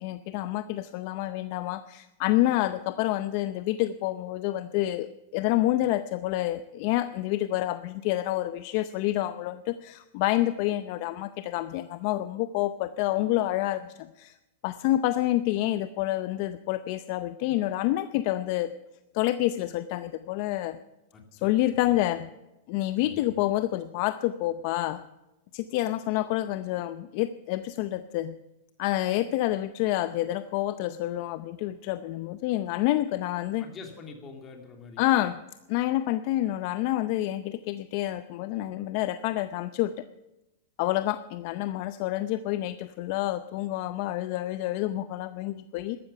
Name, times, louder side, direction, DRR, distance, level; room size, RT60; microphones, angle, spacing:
voice 1, 0.0-14.4 14.6-18.7 19.1-20.8 21.4-22.3 22.7-25.0 25.5-28.3 28.8-33.7 35.0-35.4 35.7-40.1 40.8-46.0, left 15 dB, 50° left, 12 dB, 0.6 m, -28 dB
voice 2, 21.1-21.5 23.0-23.3 33.6-35.0, left 4 dB, 25° left, 3 dB, 2.8 m, -45 dB
13.0 x 13.0 x 6.8 m, 0.98 s
supercardioid pair, 145°, 0 cm